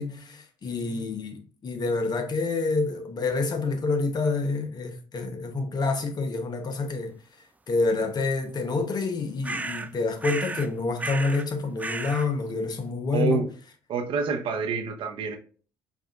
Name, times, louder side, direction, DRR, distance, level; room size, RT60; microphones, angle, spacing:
voice 1, 0.0-7.1 7.7-13.4, left 3 dB, 40° left, 0.9 m, -28 dB
sound 1, 9.4-9.9 10.2-10.7 11.0-11.5 11.8-12.3, right 3 dB, 15° right, 0.3 m, -33 dB
voice 2, 13.1-13.5 13.9-15.4, right 5 dB, 60° right, 0.8 m, -27 dB
4.7 x 2.6 x 2.4 m
hypercardioid pair, 60°, 10 cm